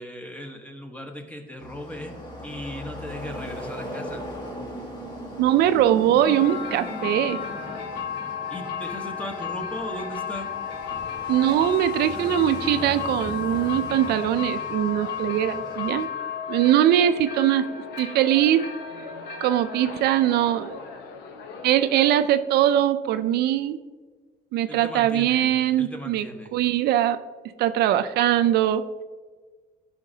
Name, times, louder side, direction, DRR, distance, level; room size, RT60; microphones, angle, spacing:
voice 1, 0.0-2.1 2.4-4.2 8.5-10.5 24.7-25.5 25.8-26.5, equal, 10° left, 3 dB, 1.1 m, -37 dB
sound 1, 1.6-16.0, equal, 25° left, 1.6 m, -39 dB
voice 2, 5.4-7.4 11.3-16.1 16.5-17.7 18.0-18.7 19.4-20.8 21.6-23.8 24.5-26.3 26.5-27.2 27.6-28.8, right 11 dB, 70° right, 11 dB, 0.4 m, -21 dB
sound 2, 6.1-22.5, left 7 dB, 80° left, 0.9 m, -34 dB
12.0 x 5.1 x 2.7 m, 1.4 s
cardioid pair, 110°, 17 cm